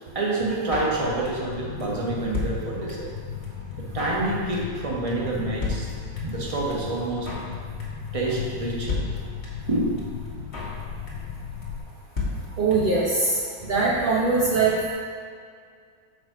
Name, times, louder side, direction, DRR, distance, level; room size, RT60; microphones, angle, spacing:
voice 1, 0.1-3.1 3.8-5.9 6.3-7.3 8.1-9.1 9.7-9.9, right 2 dB, 30° right, -4 dB, 0.7 m, -27 dB
Drum kit, 0.7-1.5 1.8-1.9 2.1-3.2 3.4-3.5 3.7-4.3 4.5-4.8 5.1-5.2 5.3-5.4 5.6-6.4 6.7-6.8 7.0-7.5 7.8-8.1 8.3-8.4 8.6-8.7 8.9-9.7 10.0-10.1 10.3-10.8 11.1-11.4 11.6-11.7 11.9-12.0 12.2-13.0 13.3-13.4 13.5-13.6, left 3 dB, 35° left, 1.4 m, -31 dB
sound 1, 0.9-11.8, left 7 dB, 75° left, 1.3 m, -36 dB
voice 2, 12.6-13.4 13.7-14.9, right 3 dB, 75° right, -6 dB, 0.4 m, -22 dB
6.3 x 4.9 x 4.8 m, 2.2 s
omnidirectional pair, 2.2 m